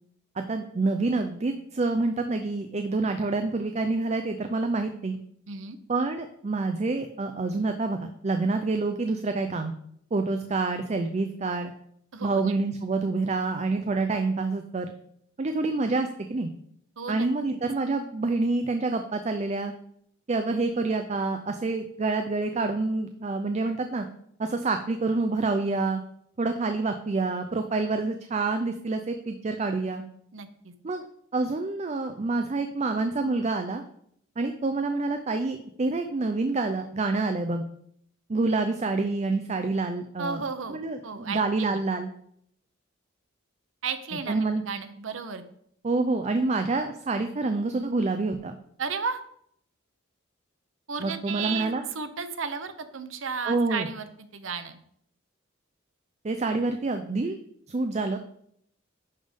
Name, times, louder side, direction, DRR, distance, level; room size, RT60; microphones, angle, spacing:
voice 1, 0.4-5.2 5.9-9.7 10.1-11.7 12.2-14.9 15.4-16.5 17.1-19.7 20.3-24.1 24.4-26.0 26.4-30.0 30.8-31.1 31.3-33.8 34.4-37.6 38.3-40.4 40.7-42.1 44.3-44.6 45.8-48.6 51.0-51.8 53.5-53.9 56.2-57.4 57.7-58.2, right 3 dB, 35° right, 7 dB, 0.4 m, -27 dB
voice 2, 5.5-5.8 12.1-12.5 17.0-17.6 30.3-30.7 40.2-41.8 43.8-45.4 48.8-49.2 50.9-54.8, right 5 dB, 75° right, 10 dB, 0.8 m, -34 dB
10.5 x 3.6 x 5.2 m, 0.69 s
head